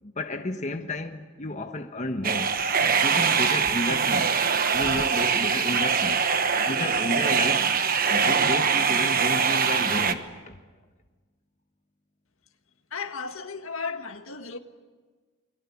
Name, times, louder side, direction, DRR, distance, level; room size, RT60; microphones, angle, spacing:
voice 1, 0.0-2.5 3.0-4.3 4.7-6.2 6.6-7.7 8.0-10.6, left 1 dB, 35° left, 1.3 m, -32 dB
sound 1, 2.2-10.1, right 6 dB, 40° right, 1.2 m, -23 dB
voice 2, 12.9-14.6, left 5 dB, 70° left, 1.8 m, -34 dB
29.5 x 22.5 x 8.5 m
head